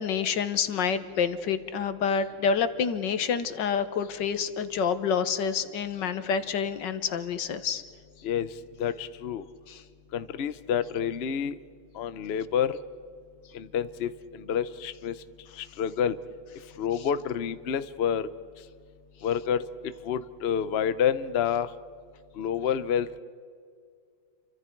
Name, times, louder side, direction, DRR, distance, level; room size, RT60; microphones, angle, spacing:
voice 1, 0.0-7.8 9.7-9.8, left 6 dB, 65° left, 11 dB, 1.7 m, -28 dB
voice 2, 8.8-9.4 10.1-11.5 12.0-12.8 13.5-15.1 15.6-16.2 16.8-18.3 19.2-19.6 20.0-21.7 22.4-23.2, left 8 dB, 85° left, 13 dB, 0.5 m, -28 dB
29.5 x 24.5 x 4.6 m, 2.2 s
omnidirectional pair, 2.2 m